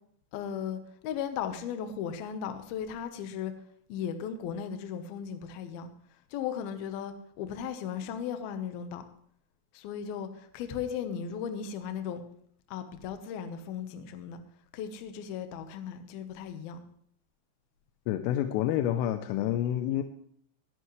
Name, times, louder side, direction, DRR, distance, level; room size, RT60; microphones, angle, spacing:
voice 1, 0.3-3.5 3.9-5.9 6.3-9.1 9.7-12.2 12.7-14.4 14.7-16.8, left 8 dB, 70° left, 2.4 m, -36 dB
voice 2, 18.1-20.0, left 11 dB, 90° left, 3.3 m, -28 dB
19.5 x 11.0 x 3.2 m
omnidirectional pair, 5.6 m